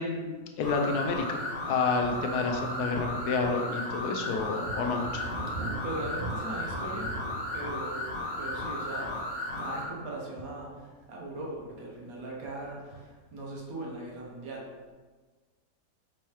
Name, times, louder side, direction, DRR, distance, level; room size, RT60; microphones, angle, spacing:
voice 1, 0.0-1.4 1.7-5.3, left 4 dB, 75° left, 3 dB, 1.0 m, -29 dB
sound 1, 0.6-9.9, left 1 dB, 50° left, 0.7 m, -35 dB
Thunder, 4.6-11.1 11.4-12.0 12.4-13.3, right 2 dB, 80° right, 1.8 m, -41 dB
voice 2, 5.8-7.1 7.5-8.0 8.4-9.1 9.6-14.7, right 1 dB, 60° right, -2 dB, 1.2 m, -39 dB
4.5 x 3.2 x 3.0 m, 1.4 s
omnidirectional pair, 1.8 m